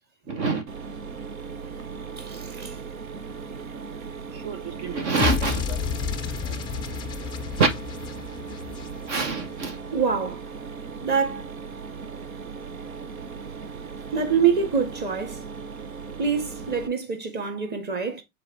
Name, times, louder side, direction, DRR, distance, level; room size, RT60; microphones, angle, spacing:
voice 1, 0.3-0.6 4.3-5.8 7.6-7.7 9.1-9.8, right 4 dB, 55° right, 1.3 m, -25 dB
Mechanisms, 0.7-16.9, right 5 dB, 80° right, 1.0 m, -38 dB
voice 2, 2.2-2.8 6.5-6.6 9.9-10.5 11.0-11.5 14.1-15.4 16.2-18.2, right 6 dB, 25° right, 1.7 m, -25 dB
sound 1, 5.2-9.4, left 8 dB, 10° left, 0.4 m, -30 dB
6.9 x 4.1 x 3.3 m
figure-of-eight pair, 100°, 41 cm